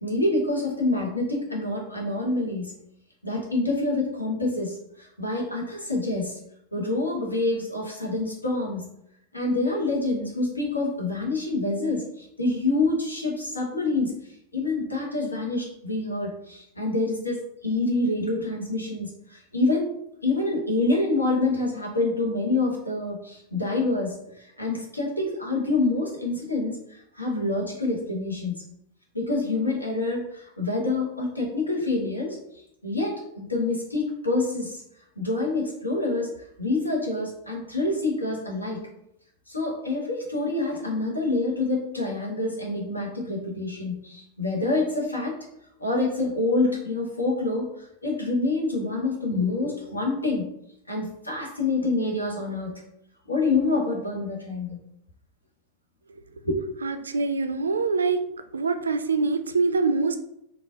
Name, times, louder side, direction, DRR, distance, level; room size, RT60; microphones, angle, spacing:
voice 1, 0.0-2.7 3.2-6.4 6.7-8.9 9.3-14.1 14.5-19.9 20.2-28.5 29.1-32.4 32.8-34.8 35.2-36.3 36.6-38.8 39.5-45.4 45.8-50.5 50.9-52.8 53.3-54.8 56.4-56.6, left 2 dB, 85° left, -2 dB, 1.0 m, -27 dB
voice 2, 56.8-58.2 58.5-60.2, right 4 dB, 75° right, 8 dB, 0.3 m, -24 dB
4.0 x 2.4 x 2.3 m, 0.77 s
figure-of-eight pair, 90°, 0 cm